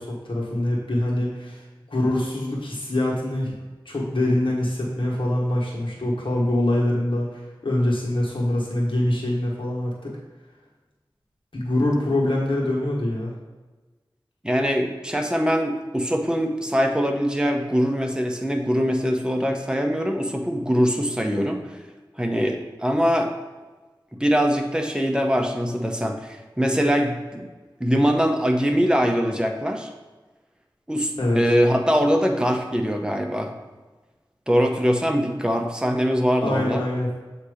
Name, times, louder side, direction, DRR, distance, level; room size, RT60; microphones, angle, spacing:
voice 1, 0.0-1.6 1.9-3.5 3.8-10.1 11.5-13.4 31.2-31.4 36.4-37.1, left 1 dB, 80° left, -3 dB, 1.4 m, -24 dB
voice 2, 14.4-21.6 22.2-23.3 24.2-27.5 27.8-29.9 30.9-33.5 34.5-36.8, equal, 10° right, 3 dB, 0.9 m, -22 dB
7.7 x 2.9 x 5.0 m, 1.2 s
wide cardioid pair, 40°, 9 cm